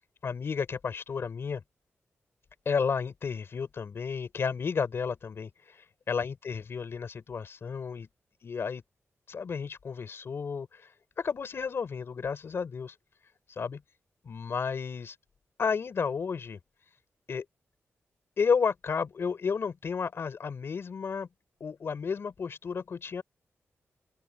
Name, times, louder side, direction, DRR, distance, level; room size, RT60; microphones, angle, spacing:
voice 1, 0.2-1.6 2.7-8.1 8.4-8.8 9.3-10.9 11.2-13.0 13.5-13.8 14.2-15.2 15.6-16.6 17.3-17.5 18.4-21.3 21.6-23.2, left 6 dB, 55° left, 5.3 m, -32 dB
open air
wide cardioid pair, 145°, 5 cm